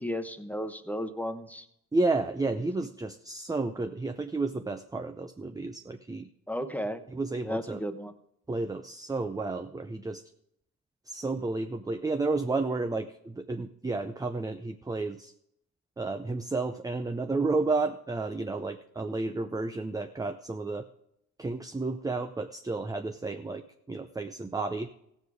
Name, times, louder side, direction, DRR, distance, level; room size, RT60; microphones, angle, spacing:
voice 1, 0.0-1.7 6.5-7.0 7.4-8.1, equal, 5° left, 8 dB, 1.0 m, -34 dB
voice 2, 1.9-6.3 7.1-7.8 8.5-10.2 11.1-15.3 16.0-20.9 21.4-24.9, right 3 dB, 10° right, 6 dB, 0.6 m, -31 dB
16.0 x 7.2 x 4.8 m, 0.76 s
cardioid pair, 90°, 30 cm